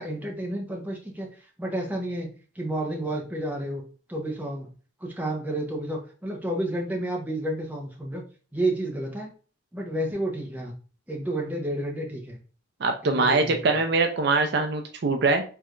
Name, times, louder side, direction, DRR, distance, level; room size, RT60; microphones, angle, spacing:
voice 1, 0.0-2.3 2.5-3.8 4.1-4.7 5.0-8.2 8.5-9.3 9.7-10.7 11.1-12.4 13.0-13.7, right 1 dB, 10° right, -1 dB, 0.8 m, -30 dB
voice 2, 12.8-15.4, right 3 dB, 55° right, 6 dB, 0.5 m, -23 dB
4.6 x 3.3 x 2.5 m, 0.39 s
head